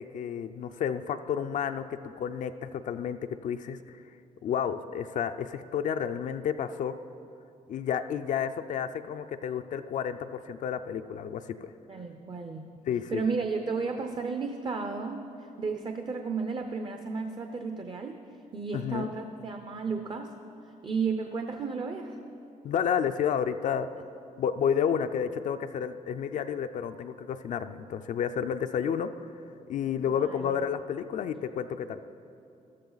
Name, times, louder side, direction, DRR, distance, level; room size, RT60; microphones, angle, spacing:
voice 1, 0.0-4.0 4.4-7.0 7.7-11.7 12.9-13.2 18.7-19.1 22.6-23.9 24.4-29.3 29.7-32.0, left 8 dB, 65° left, 8 dB, 0.4 m, -31 dB
voice 2, 11.9-12.7 13.1-18.2 18.5-20.3 20.8-22.2 30.1-30.6, right 4 dB, 35° right, 5 dB, 0.6 m, -33 dB
14.0 x 13.0 x 4.0 m, 2.6 s
cardioid pair, 135°, 14 cm